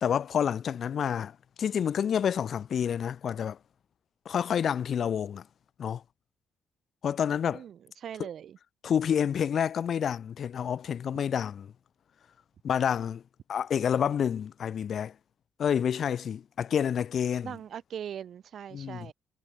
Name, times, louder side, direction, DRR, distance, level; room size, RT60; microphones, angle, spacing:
voice 1, 0.0-3.6 4.3-5.4 5.8-6.0 7.0-7.6 8.8-11.7 12.6-13.2 13.5-15.1 15.6-17.5 18.7-19.1, left 8 dB, 55° left, 0.6 m, -28 dB
voice 2, 7.5-8.6 17.4-19.1, right 9 dB, 65° right, 0.6 m, -40 dB
cardioid pair, 90°, 0 cm